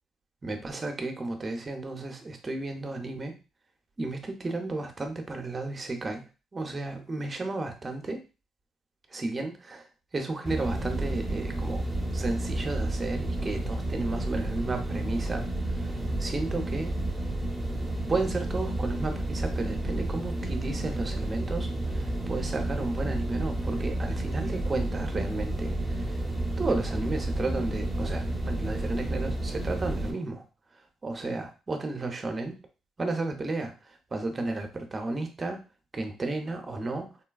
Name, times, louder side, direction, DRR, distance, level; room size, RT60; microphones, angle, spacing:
voice 1, 0.4-3.3 4.0-6.2 6.5-8.2 9.1-9.9 10.1-11.8 12.1-16.9 18.1-26.2 26.6-30.4 31.0-32.5 33.0-35.6 35.9-37.1, right 2 dB, 30° right, 5 dB, 0.7 m, -33 dB
sound 1, 10.5-30.1, right 1 dB, ahead, 0.9 m, -31 dB
4.0 x 2.2 x 2.3 m, 0.32 s
cardioid pair, 75°, 0 cm